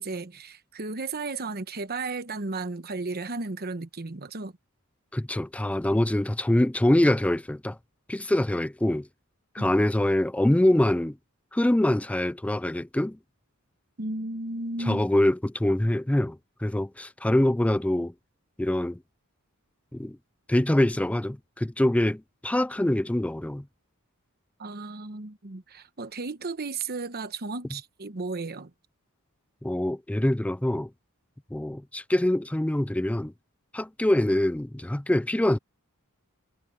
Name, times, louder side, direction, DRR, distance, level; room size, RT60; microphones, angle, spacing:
voice 1, 0.0-4.5 9.6-9.8 14.0-15.0 24.6-28.7, right 3 dB, 45° right, 1.1 m, -34 dB
voice 2, 5.1-7.8 8.1-9.1 9.5-11.2 11.5-13.2 14.8-18.1 18.6-19.0 19.9-20.2 20.5-23.6 29.6-30.9 31.5-33.3 33.7-35.6, left 1 dB, 5° left, 0.3 m, -24 dB
head